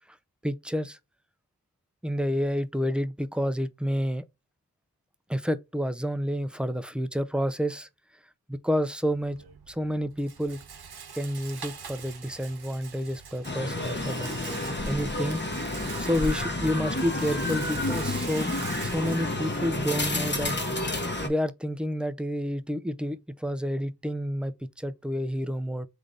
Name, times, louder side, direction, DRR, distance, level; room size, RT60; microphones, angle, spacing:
voice 1, 0.4-1.0 2.0-4.2 5.3-7.9 8.5-10.6 11.1-14.3 14.9-15.4 16.0-18.5 18.8-20.6 21.2-25.9, equal, 5° right, 0.4 m, -29 dB
Rattle, 9.1-20.1, right 6 dB, 85° right, 0.8 m, -45 dB
sound 1, 13.4-21.3, left 2 dB, 30° left, 0.9 m, -30 dB
3.9 x 3.3 x 3.6 m
wide cardioid pair, 70°, 38 cm